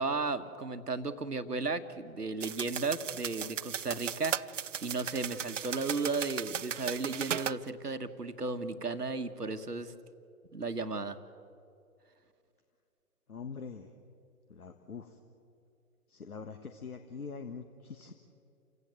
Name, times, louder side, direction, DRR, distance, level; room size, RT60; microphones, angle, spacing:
voice 1, 0.0-4.4 4.8-9.9 10.5-11.2, right 3 dB, 90° right, 8 dB, 1.5 m, -34 dB
sound 1, 2.4-7.6, right 9 dB, 55° right, 0.5 m, -37 dB
voice 2, 13.3-13.9 14.5-15.2 16.1-18.1, left 5 dB, 70° left, 7 dB, 1.7 m, -44 dB
29.5 x 16.5 x 7.6 m, 2.5 s
figure-of-eight pair, 140°, 46 cm